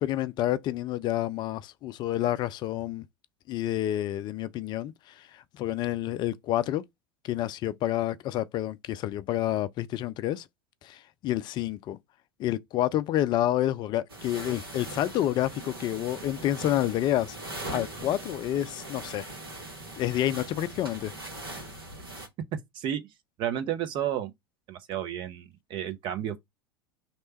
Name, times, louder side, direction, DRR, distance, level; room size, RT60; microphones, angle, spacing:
voice 1, 0.0-3.0 3.5-6.8 7.2-10.4 10.8-12.0 12.4-17.4 17.7-19.3 20.0-21.1, left 13 dB, 40° left, 0.4 m, -29 dB
sound 1, 14.1-22.3, right 2 dB, 80° right, 1.3 m, -41 dB
voice 2, 23.4-24.3 24.7-26.4, right 10 dB, 45° right, 0.8 m, -31 dB
3.2 x 2.9 x 4.3 m
figure-of-eight pair, 80°, 12 cm